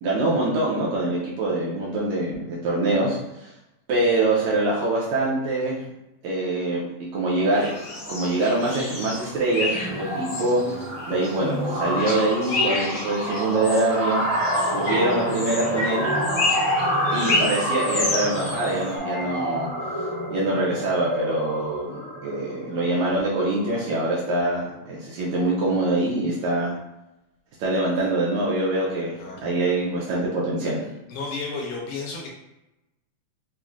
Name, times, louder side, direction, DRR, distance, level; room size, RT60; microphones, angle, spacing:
voice 1, 0.0-3.5 3.9-5.8 6.2-7.7 8.1-10.8 11.1-14.2 14.5-16.0 17.1-19.7 20.3-26.7 27.6-30.8, right 2 dB, 80° right, -5 dB, 1.7 m, -24 dB
sound 1, 7.5-19.0, left 2 dB, 60° left, 1.4 m, -30 dB
sound 2, 7.8-8.1 8.4-8.6 8.9-23.8, equal, 55° right, 1.2 m, -28 dB
voice 2, 29.1-29.5 31.1-32.3, left 3 dB, 80° left, -1 dB, 2.0 m, -32 dB
5.5 x 2.0 x 2.4 m, 0.94 s
omnidirectional pair, 3.8 m